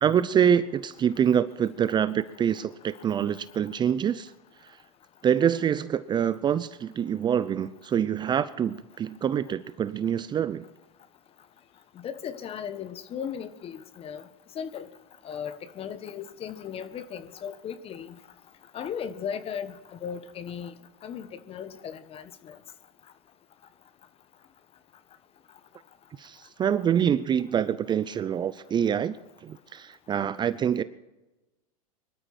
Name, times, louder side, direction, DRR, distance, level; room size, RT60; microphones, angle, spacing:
voice 1, 0.0-4.3 4.6-4.8 5.2-10.7 26.2-30.8, right 8 dB, 25° right, 15 dB, 0.6 m, -26 dB
voice 2, 12.0-14.2 14.5-14.9 15.2-18.1 18.7-20.7 21.0-22.6, left 8 dB, 30° left, 12 dB, 1.4 m, -36 dB
24.0 x 12.5 x 4.4 m, 1.0 s
hypercardioid pair, 105°, 19 cm